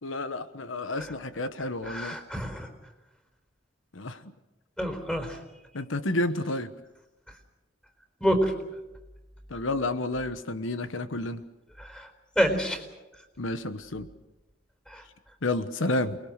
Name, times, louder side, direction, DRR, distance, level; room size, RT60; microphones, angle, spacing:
voice 1, 0.0-2.2 3.9-4.3 5.7-6.7 9.5-11.4 13.4-14.1 15.4-16.2, left 2 dB, 90° left, 1.2 m, -30 dB
voice 2, 1.8-2.7 4.8-5.4 8.2-8.6 11.8-12.1 12.4-12.8 14.9-15.0, equal, 5° left, 4.3 m, -27 dB
29.5 x 21.5 x 6.7 m
head